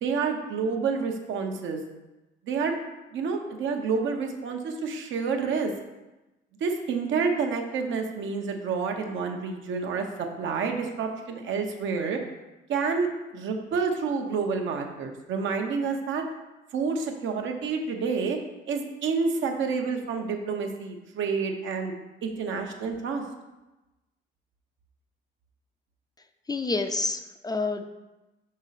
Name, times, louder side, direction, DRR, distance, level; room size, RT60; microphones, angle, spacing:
voice 1, 0.0-1.8 2.4-2.8 3.1-5.7 6.6-12.2 12.7-16.2 16.7-18.4 18.7-21.9 22.2-23.2, right 5 dB, 75° right, 3 dB, 0.9 m, -29 dB
voice 2, 26.5-27.8, left 3 dB, 20° left, 7 dB, 0.4 m, -28 dB
5.3 x 5.1 x 4.1 m, 1.1 s
cardioid pair, 90°, 20 cm